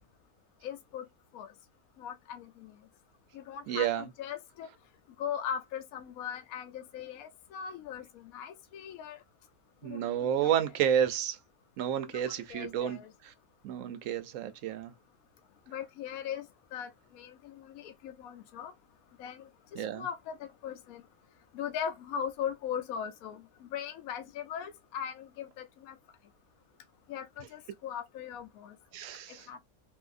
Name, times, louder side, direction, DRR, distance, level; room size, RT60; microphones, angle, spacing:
voice 1, 0.6-1.0 1.3-1.5 2.0-2.7 3.3-4.7 5.2-8.0 8.3-9.2 9.8-10.5 12.1-13.1 15.7-16.4 16.7-18.7 19.2-21.0 21.5-23.4 23.7-26.0 27.1-28.8 29.5-29.6, left 8 dB, 70° left, 0.9 m, -39 dB
voice 2, 3.7-4.1 9.8-11.4 11.8-13.0 13.6-14.9 19.8-20.0 28.9-29.5, right 9 dB, 70° right, 0.8 m, -30 dB
3.5 x 2.7 x 2.4 m
omnidirectional pair, 1.7 m